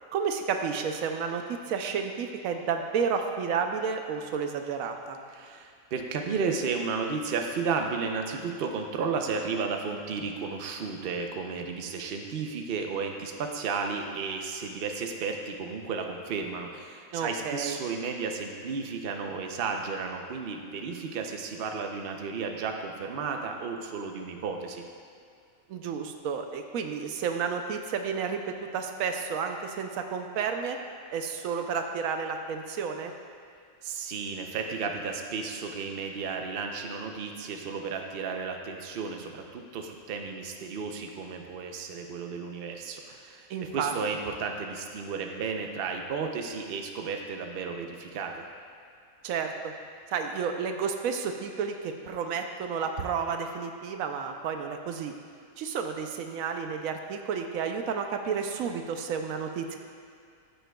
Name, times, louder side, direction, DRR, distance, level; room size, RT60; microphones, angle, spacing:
voice 1, 0.1-5.2 17.1-17.8 25.7-28.4 28.7-30.8 31.1-33.1 43.5-43.9 49.2-49.7 50.1-55.1 55.6-59.8, right 6 dB, 85° right, 5 dB, 1.0 m, -31 dB
voice 2, 5.3-24.8 33.8-48.5, right 5 dB, 55° right, 3 dB, 0.8 m, -33 dB
13.5 x 6.7 x 2.3 m, 2.4 s
omnidirectional pair, 1.4 m